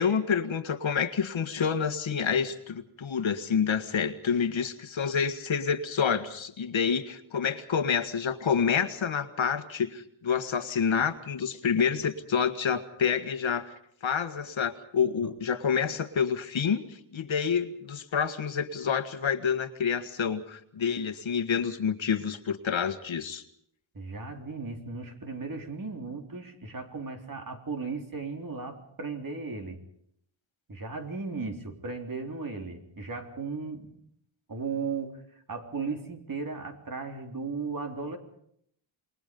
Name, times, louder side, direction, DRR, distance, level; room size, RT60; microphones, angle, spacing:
voice 1, 0.0-13.7 14.0-23.4, left 6 dB, 70° left, 8 dB, 1.8 m, -28 dB
voice 2, 23.9-29.8 30.7-34.0 34.5-35.2 35.5-38.2, right 4 dB, 45° right, 4 dB, 3.7 m, -36 dB
28.0 x 21.5 x 5.4 m, 0.69 s
wide cardioid pair, 130°, 48 cm